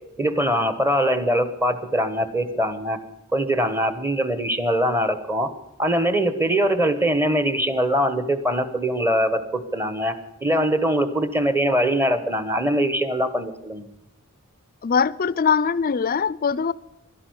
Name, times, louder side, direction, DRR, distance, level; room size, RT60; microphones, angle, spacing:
voice 1, 0.2-3.0 3.3-5.5 5.8-10.1 10.4-13.9, equal, 10° right, 1.2 m, -22 dB
voice 2, 14.8-16.7, left 6 dB, 45° left, 0.5 m, -21 dB
12.0 x 11.0 x 9.4 m
head